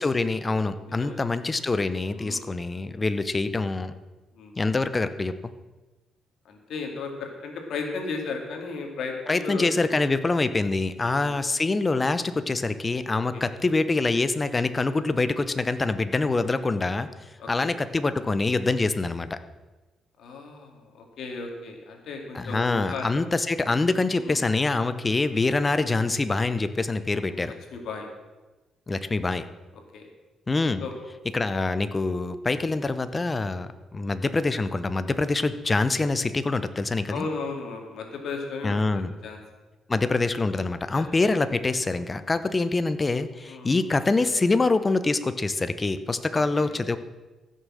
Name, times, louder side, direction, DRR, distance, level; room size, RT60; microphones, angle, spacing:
voice 1, 0.0-3.9 4.6-5.3 9.3-17.1 17.5-19.4 22.3-27.5 28.9-29.4 30.5-30.8 31.3-37.3 38.6-39.1 39.9-47.0, left 3 dB, 25° left, 12 dB, 0.7 m, -25 dB
voice 2, 0.9-1.2 2.2-2.4 4.3-4.5 6.5-9.7 11.0-11.4 13.3-13.4 17.4-17.7 20.2-23.1 24.2-24.4 27.3-28.1 29.9-30.1 30.8-30.9 37.1-39.4 40.9-41.1 43.4-43.7 46.3-46.8, left 4 dB, 70° left, 3 dB, 2.3 m, -35 dB
15.0 x 6.6 x 6.3 m, 1.2 s
cardioid pair, 90°, 0 cm